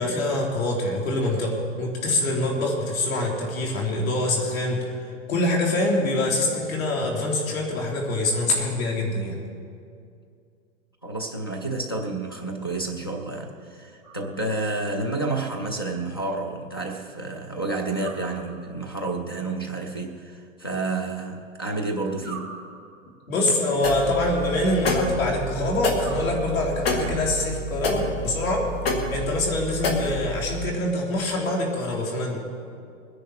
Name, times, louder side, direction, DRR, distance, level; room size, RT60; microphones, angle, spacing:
voice 1, 0.0-4.9 5.3-9.4 23.3-28.7 29.1-32.4, left 1 dB, 75° left, -1 dB, 3.7 m, -25 dB
voice 2, 11.0-22.5, right 2 dB, 20° left, -2 dB, 0.3 m, -30 dB
sound 1, 14.0-14.9 18.0-19.0 22.2-23.3 25.9-26.9, right 4 dB, ahead, 1.5 m, -44 dB
sound 2, 23.8-30.6, left 1 dB, 45° left, 1.8 m, -28 dB
21.0 x 10.0 x 4.6 m, 2.4 s
hypercardioid pair, 170°, 41 cm